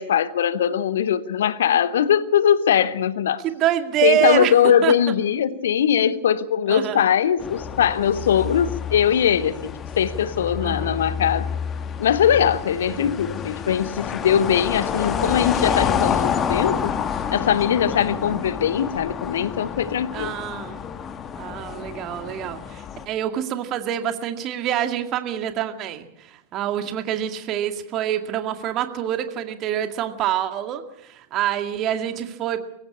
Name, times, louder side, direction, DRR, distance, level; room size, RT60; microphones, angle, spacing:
voice 1, 0.0-3.4 4.0-11.5 12.0-17.0 17.3-20.4, left 9 dB, 60° left, 1.0 m, -21 dB
voice 2, 3.4-4.5 4.8-4.9 6.7-7.1 10.6-11.1 12.9-13.1 18.1-18.4 20.1-20.8 21.3-32.6, right 11 dB, 35° right, 2.1 m, -26 dB
sound 1, 7.4-23.1, left 7 dB, 25° left, 1.5 m, -29 dB
24.5 x 15.5 x 8.4 m
figure-of-eight pair, 90°, 0 cm